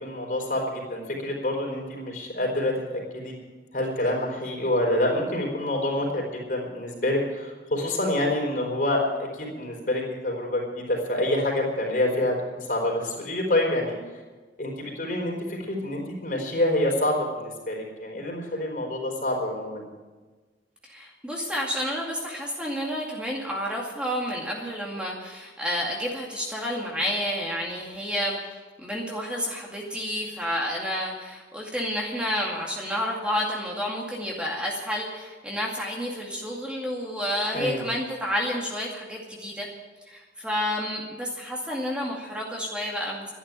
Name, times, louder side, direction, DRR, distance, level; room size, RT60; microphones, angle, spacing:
voice 1, 0.0-3.3 3.7-13.9 14.6-19.9 37.5-37.9, left 1 dB, 50° left, -1 dB, 4.5 m, -27 dB
voice 2, 20.8-39.7 40.1-43.3, equal, 5° right, -2 dB, 2.3 m, -30 dB
13.0 x 11.0 x 9.0 m, 1.3 s
head